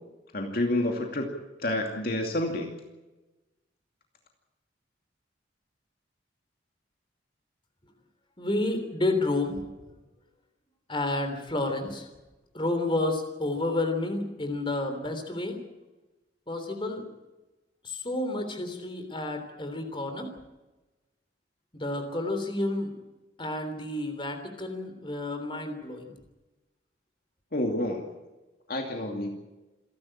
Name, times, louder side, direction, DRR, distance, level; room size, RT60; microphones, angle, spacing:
voice 1, 0.3-1.3 1.6-2.7 27.5-28.0 28.7-29.3, left 1 dB, 50° left, 2 dB, 2.6 m, -28 dB
voice 2, 8.4-9.6 10.9-12.1 12.5-15.6 16.5-17.0 17.8-20.3 21.7-23.0 23.4-26.1, left 2 dB, 25° left, 6 dB, 3.4 m, -30 dB
27.5 x 12.0 x 8.9 m, 1.1 s
head